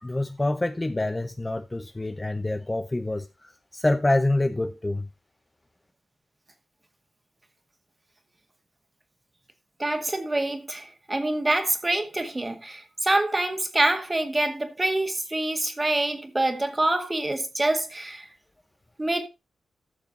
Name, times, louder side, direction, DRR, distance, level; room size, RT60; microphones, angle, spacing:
voice 1, 0.0-3.3 3.7-5.1, left 2 dB, 15° left, 0.7 m, -26 dB
voice 2, 9.8-18.2 19.0-19.3, right 2 dB, 20° right, 2.1 m, -26 dB
13.5 x 6.8 x 4.1 m
wide cardioid pair, 115°, 0 cm